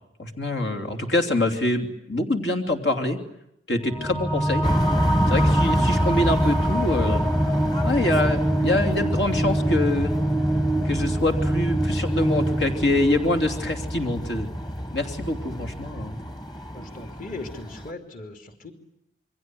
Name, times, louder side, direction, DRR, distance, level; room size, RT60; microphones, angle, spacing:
voice 1, 0.2-3.2 3.7-4.7 5.3-7.3 7.8-10.1 10.8-14.5 14.9-16.2, left 1 dB, 80° left, 4 dB, 3.1 m, -25 dB
sound 1, 3.9-14.8, right 1 dB, 10° left, 1.0 m, -25 dB
sound 2, 4.6-17.9, equal, 25° left, 1.6 m, -28 dB
voice 2, 16.7-18.7, left 2 dB, 50° left, 6 dB, 2.9 m, -38 dB
28.0 x 23.5 x 7.8 m, 0.79 s
head